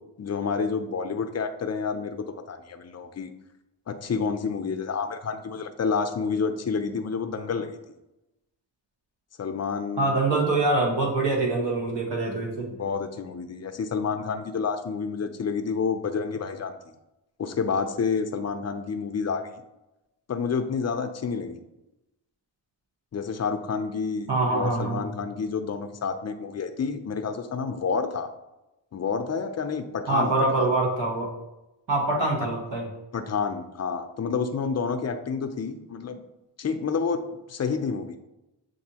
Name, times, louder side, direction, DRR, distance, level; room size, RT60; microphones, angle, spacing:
voice 1, 0.2-3.3 3.9-7.7 9.4-10.1 12.7-16.8 17.4-19.5 20.3-21.6 23.1-28.3 28.9-30.7 33.1-36.2 36.6-38.2, left 5 dB, 40° left, 8 dB, 0.5 m, -29 dB
voice 2, 10.0-12.7 24.3-25.1 30.1-31.3 31.9-32.9, right 2 dB, 70° right, -1 dB, 1.4 m, -24 dB
6.8 x 2.6 x 2.8 m, 0.96 s
cardioid pair, 70°, 44 cm